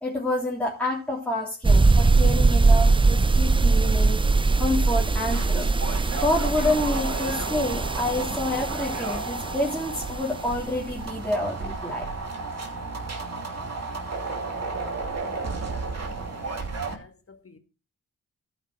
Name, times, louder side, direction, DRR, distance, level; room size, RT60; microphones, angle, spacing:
voice 1, 0.0-4.2 4.6-5.7 6.1-12.1, left 1 dB, 5° left, 3.2 m, -28 dB
sound 1, 1.6-10.1, right 3 dB, 15° right, 0.5 m, -21 dB
sound 2, 3.0-16.9, right 3 dB, 50° right, 2.8 m, -33 dB
voice 2, 14.3-14.9 15.2-15.9 16.9-17.1 17.5-17.6, left 4 dB, 40° left, 2.0 m, -49 dB
12.5 x 5.2 x 6.1 m
cardioid pair, 55°, 34 cm